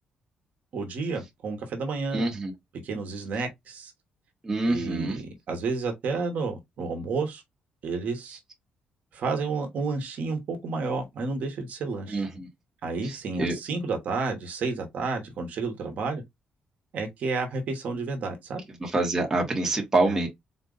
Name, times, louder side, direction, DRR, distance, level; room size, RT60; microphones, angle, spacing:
voice 1, 0.7-2.3 2.8-3.9 4.7-7.4 7.8-8.4 9.1-12.2 12.8-16.2 16.9-18.6 20.0-20.2, right 4 dB, 55° right, 1.1 m, -31 dB
voice 2, 2.1-2.5 4.4-5.2 12.1-12.5 13.0-13.5 18.8-20.3, right 2 dB, 15° right, 1.1 m, -26 dB
4.0 x 2.4 x 3.9 m
cardioid pair, 160°, 3 cm